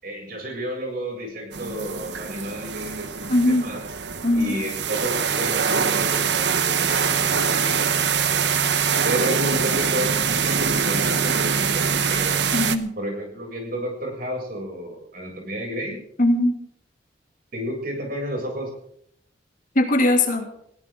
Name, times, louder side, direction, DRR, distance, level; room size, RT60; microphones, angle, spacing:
voice 1, 0.0-3.9 4.3-8.4 9.0-12.4 13.0-16.0 17.5-18.7, right 1 dB, 55° right, 0 dB, 7.4 m, -31 dB
sound 1, 1.5-12.8, right 6 dB, 70° right, 1.1 m, -23 dB
voice 2, 3.3-3.7 4.2-4.6 12.5-12.9 16.2-16.6 19.7-20.5, left 1 dB, 45° left, 4 dB, 2.8 m, -20 dB
20.5 x 16.5 x 3.9 m, 0.68 s
head